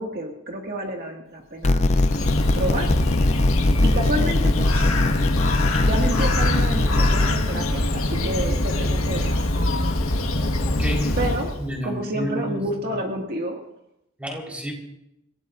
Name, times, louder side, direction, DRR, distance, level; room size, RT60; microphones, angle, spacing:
voice 1, 0.0-1.9 2.5-2.9 3.8-5.1 5.8-9.4 11.2-11.6 11.8-13.6, right 1 dB, 45° right, 0 dB, 2.0 m, -29 dB
sound 1, 1.6-7.3, left 2 dB, 30° left, 0.6 m, -21 dB
Bird, 1.7-11.7, left 1 dB, 85° left, 1.6 m, -23 dB
voice 2, 10.6-11.3 11.6-12.6 12.8-12.9 14.2-14.7, equal, 5° right, -1 dB, 4.2 m, -31 dB
29.0 x 17.5 x 2.6 m, 0.79 s
head